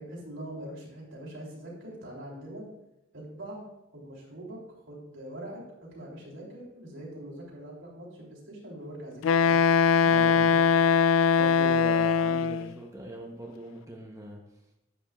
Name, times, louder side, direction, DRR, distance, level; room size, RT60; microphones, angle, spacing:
voice 1, 0.0-2.7 3.1-4.6 4.9-9.6 10.0-10.7, right 1 dB, 80° right, -4 dB, 3.1 m, -43 dB
Wind instrument woodwind instrument, 9.2-12.7, left 6 dB, 80° left, 0.3 m, -21 dB
voice 2, 10.0-10.5 11.4-14.4, right 1 dB, 15° right, -1 dB, 0.9 m, -40 dB
10.5 x 8.1 x 2.4 m, 0.90 s
head